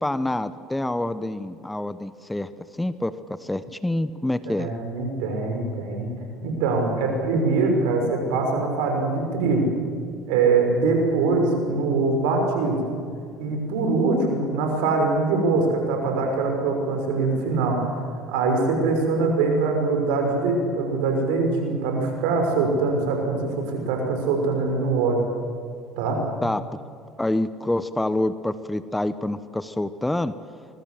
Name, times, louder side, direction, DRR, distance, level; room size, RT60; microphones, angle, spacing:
voice 1, 0.0-3.1 3.4-4.7 26.4-26.7 27.2-30.3, left 1 dB, 10° left, 13 dB, 1.1 m, -27 dB
voice 2, 4.5-6.1 6.4-9.6 10.3-12.8 13.4-17.8 18.3-25.2 26.0-26.2, right 3 dB, 75° right, 3 dB, 6.1 m, -23 dB
24.5 x 22.5 x 7.9 m, 2.1 s
hypercardioid pair, 70°, 0 cm